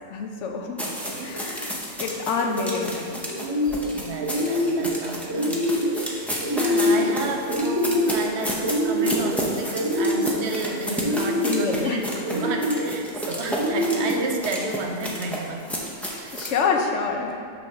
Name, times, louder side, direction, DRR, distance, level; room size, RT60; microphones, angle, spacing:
voice 1, 0.1-0.8 1.2-3.2 11.4-12.0 16.3-17.4, left 5 dB, 90° left, 3 dB, 1.0 m, -27 dB
sound 1, 0.8-16.6, equal, ahead, 0.5 m, -32 dB
voice 2, 0.8-1.4 3.9-15.7 16.1-16.4 17.2-17.3, right 2 dB, 70° right, 3 dB, 0.9 m, -32 dB
sound 2, 2.4-2.8 3.2-3.9 4.2-4.9 5.3-6.0 6.4-7.1 7.5-8.3 8.6-9.3 9.7-10.5 10.9-11.7 12.2-12.9 13.5-14.3, left 1 dB, 20° right, 0.9 m, -24 dB
6.2 x 3.1 x 5.7 m, 2.3 s
omnidirectional pair, 1.2 m